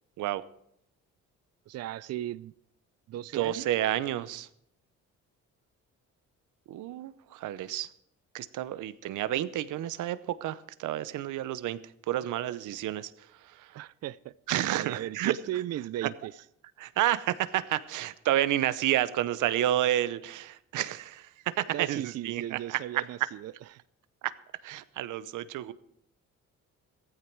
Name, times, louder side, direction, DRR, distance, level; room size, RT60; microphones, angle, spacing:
voice 1, 1.7-2.5 3.1-3.7 13.7-14.3 14.7-16.3 21.7-23.8, right 13 dB, 55° right, 0.5 m, -36 dB
voice 2, 3.3-4.5 6.7-7.9 8.3-11.8 12.1-13.8 14.5-15.3 16.0-16.1 16.8-23.0 24.2-24.4 24.6-25.7, right 13 dB, 80° right, 0.8 m, -30 dB
16.0 x 14.0 x 4.6 m
cardioid pair, 90°, 30 cm